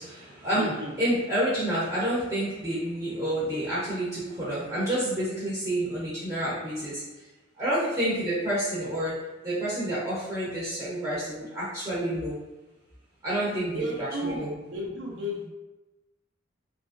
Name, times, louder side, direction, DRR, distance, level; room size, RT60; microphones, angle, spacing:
voice 1, 0.0-7.0 7.6-9.1 9.4-12.4 13.2-13.8 14.2-14.5, right 1 dB, 20° right, -10 dB, 0.7 m, -29 dB
voice 2, 0.6-0.9 13.6-15.5, equal, 70° right, -1 dB, 0.6 m, -33 dB
2.8 x 2.4 x 2.5 m, 1.1 s
head